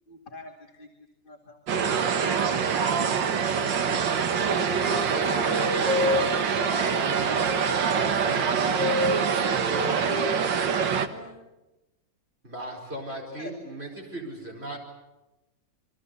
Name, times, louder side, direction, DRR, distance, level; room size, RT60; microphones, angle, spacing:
voice 1, 0.1-0.9 1.2-3.4 4.3-7.7 12.7-12.8 13.1-13.5, left 2 dB, 30° left, 2 dB, 2.4 m, -44 dB
sound 1, 1.7-11.1, right 6 dB, 80° right, 2.1 m, -25 dB
Wind instrument woodwind instrument, 4.3-7.3 7.6-10.9, left 1 dB, 60° right, 3.0 m, -30 dB
voice 2, 8.2-9.4 9.7-11.4, left 3 dB, 45° left, 5 dB, 7.4 m, -45 dB
voice 3, 12.4-14.8, right 1 dB, 35° right, 2 dB, 5.1 m, -37 dB
28.0 x 23.0 x 8.3 m, 1.0 s
omnidirectional pair, 2.0 m